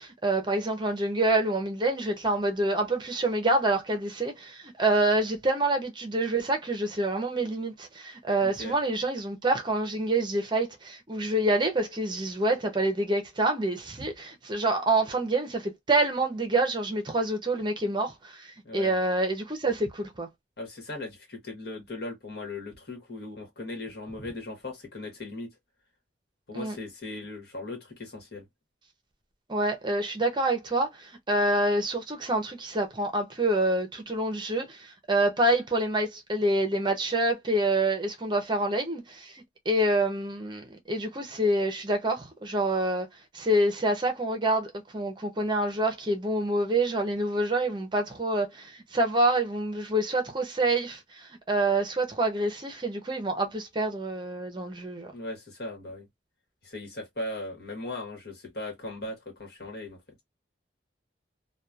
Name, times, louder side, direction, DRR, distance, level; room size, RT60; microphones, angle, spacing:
voice 1, 0.0-20.3 26.5-26.8 29.5-39.3 39.7-43.1 43.3-55.1, right 1 dB, 25° right, 0.7 m, -27 dB
voice 2, 8.4-8.8 18.6-18.9 20.6-25.5 26.5-28.5 55.1-56.1 56.6-60.0, left 2 dB, 60° left, 1.4 m, -38 dB
2.9 x 2.3 x 2.3 m
head